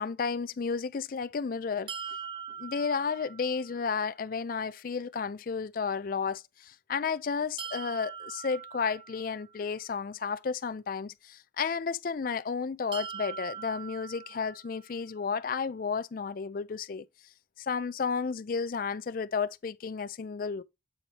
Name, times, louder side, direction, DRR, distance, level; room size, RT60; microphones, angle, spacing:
voice 1, 0.0-1.9 2.6-17.0 17.6-20.6, left 5 dB, 45° left, 0.4 m, -32 dB
sound 1, 1.9-3.8 7.6-9.6 12.9-14.9, right 8 dB, 25° right, 0.5 m, -42 dB
8.4 x 4.1 x 3.2 m
head